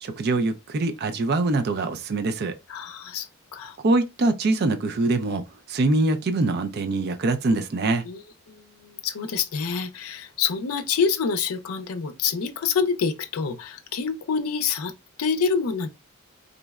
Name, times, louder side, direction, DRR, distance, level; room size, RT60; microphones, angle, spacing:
voice 1, 0.0-2.5 3.8-8.0, right 2 dB, 45° right, 0.3 m, -24 dB
voice 2, 2.7-3.8 8.0-14.9 15.2-15.9, left 6 dB, 75° left, 0.5 m, -27 dB
3.7 x 2.0 x 2.3 m
head